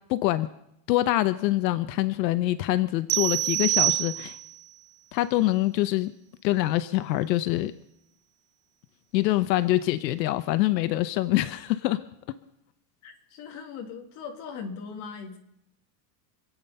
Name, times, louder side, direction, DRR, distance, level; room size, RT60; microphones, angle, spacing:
voice 1, 0.1-0.5 0.9-4.4 5.1-6.1 6.4-7.7 9.1-12.0, left 16 dB, 85° left, 12 dB, 1.0 m, -25 dB
sound 1, 3.1-4.6, right 16 dB, 45° right, 0.5 m, -26 dB
voice 2, 13.0-15.4, left 5 dB, 35° left, 2 dB, 2.4 m, -39 dB
26.5 x 9.0 x 5.5 m, 0.77 s
supercardioid pair, 180°, 49 cm